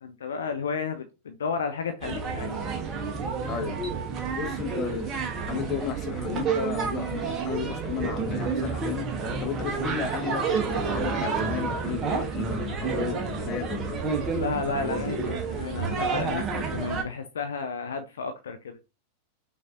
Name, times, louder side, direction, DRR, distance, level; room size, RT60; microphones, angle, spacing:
voice 1, 0.0-2.6 14.3-18.8, left 5 dB, 65° left, 0.4 m, -32 dB
sound 1, 2.0-17.0, right 5 dB, 25° right, 0.9 m, -30 dB
voice 2, 3.4-3.9 4.3-9.1 9.4-14.0, left 8 dB, 35° left, 0.8 m, -34 dB
5.8 x 2.6 x 2.4 m
figure-of-eight pair, 90°, 0 cm